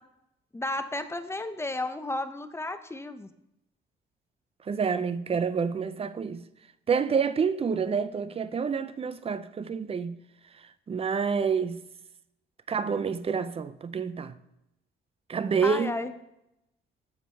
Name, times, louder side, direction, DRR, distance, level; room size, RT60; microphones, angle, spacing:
voice 1, 0.5-3.3 15.6-16.1, left 2 dB, 15° left, 0.6 m, -33 dB
voice 2, 4.6-6.4 6.9-10.2 10.9-11.8 12.7-14.4 15.3-15.9, right 6 dB, 30° right, 0.5 m, -28 dB
7.3 x 5.0 x 4.4 m
cardioid pair, 90°, 20 cm